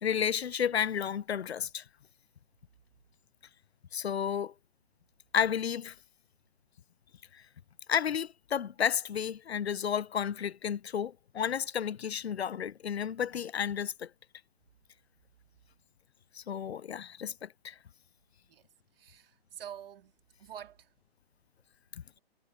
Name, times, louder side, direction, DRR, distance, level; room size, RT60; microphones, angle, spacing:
voice 1, 0.0-1.8 3.9-4.5 5.3-6.0 7.3-7.4 7.9-14.1 16.3-17.8, left 8 dB, 85° left, 0.7 m, -32 dB
voice 2, 18.9-20.1 20.4-20.9, right 9 dB, 65° right, 3.6 m, -47 dB
hypercardioid pair, 135°, 31 cm